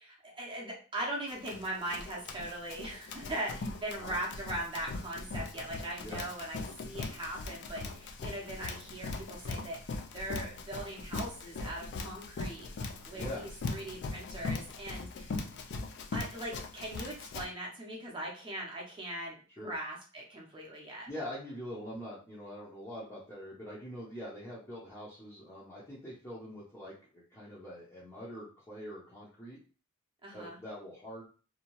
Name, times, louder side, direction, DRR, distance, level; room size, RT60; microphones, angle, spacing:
voice 1, 0.0-15.5 16.1-21.1 30.2-30.6, right 1 dB, 25° right, -3 dB, 0.6 m, -40 dB
Run, 1.3-17.5, left 3 dB, 55° left, 0.4 m, -40 dB
voice 2, 13.1-13.5 19.6-19.7 21.1-29.6 30.3-31.3, equal, 15° left, -8 dB, 0.6 m, -44 dB
2.6 x 2.2 x 2.9 m, 0.38 s
head